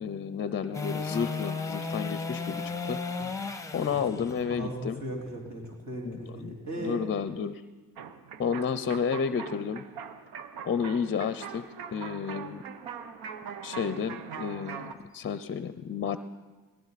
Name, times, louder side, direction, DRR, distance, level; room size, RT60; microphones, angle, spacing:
voice 1, 0.0-3.0 3.7-5.0 6.0-7.6 8.4-9.8 10.6-11.6 11.9-12.6 13.6-16.2, left 6 dB, 35° left, 12 dB, 0.6 m, -31 dB
sound 1, 0.7-6.9 13.4-13.5, left 4 dB, 10° left, 1.0 m, -35 dB
voice 2, 3.9-4.2 4.5-7.0, right 1 dB, 45° right, -2 dB, 4.3 m, -37 dB
sound 2, 8.0-14.9, right 7 dB, 85° right, 1.0 m, -42 dB
18.5 x 16.5 x 4.1 m, 1.3 s
cardioid pair, 90°, 37 cm